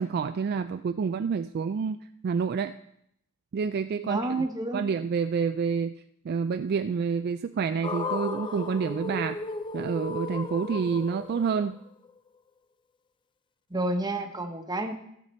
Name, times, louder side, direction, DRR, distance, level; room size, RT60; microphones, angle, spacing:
voice 1, 0.0-2.0 2.2-2.7 3.5-4.5 4.7-5.9 6.2-9.4 9.7-11.8, right 6 dB, 45° right, 9 dB, 0.3 m, -28 dB
voice 2, 4.0-4.8 13.7-14.9, right 2 dB, 20° right, 5 dB, 1.0 m, -29 dB
sound 1, 7.8-12.1, left 3 dB, 20° left, 0.4 m, -35 dB
15.5 x 6.6 x 4.3 m, 0.74 s
head